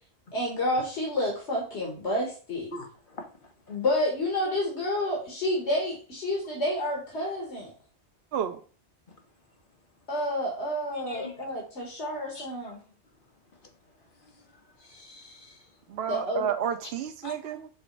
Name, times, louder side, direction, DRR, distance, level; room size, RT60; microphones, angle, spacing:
voice 1, 0.3-2.7 3.7-7.7 10.1-12.8 16.1-16.5, left 1 dB, 80° left, 1.8 m, -29 dB
voice 2, 2.7-3.8 11.1-11.5 12.3-12.5 14.2-14.5 14.8-15.7 17.2-17.3, left 2 dB, 50° left, 1.4 m, -44 dB
voice 3, 15.9-17.7, right 8 dB, 70° right, 0.8 m, -31 dB
5.4 x 3.9 x 4.5 m
omnidirectional pair, 1.1 m